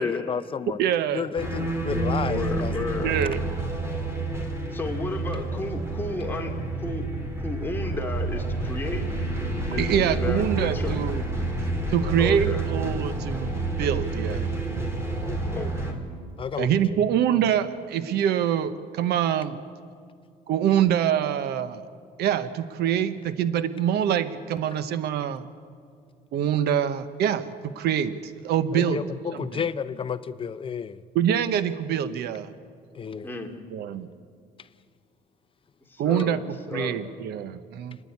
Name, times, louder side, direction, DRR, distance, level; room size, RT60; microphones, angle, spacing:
voice 1, 0.0-0.8 1.1-2.8 11.9-12.3 15.2-15.6 16.4-17.0 28.7-31.0 32.9-33.3, left 6 dB, 30° left, 0.8 m, -32 dB
voice 2, 0.8-1.2 3.0-3.4 9.7-11.2 11.9-14.5 16.6-19.6 20.5-21.8 22.2-25.5 26.3-27.5 27.7-28.1 28.4-29.0 29.3-29.5 31.1-32.5 33.7-34.1 36.0-36.4 36.7-38.0, right 9 dB, 75° right, 1.0 m, -25 dB
sound 1, 1.4-15.9, right 2 dB, 15° right, 3.5 m, -29 dB
voice 3, 2.2-3.2 4.7-7.1 7.4-9.0 9.7-11.0 12.2-12.6 15.5-16.0 33.2-33.5 35.9-37.0, left 2 dB, 10° left, 2.5 m, -33 dB
28.5 x 10.5 x 9.5 m
cardioid pair, 110°, 17 cm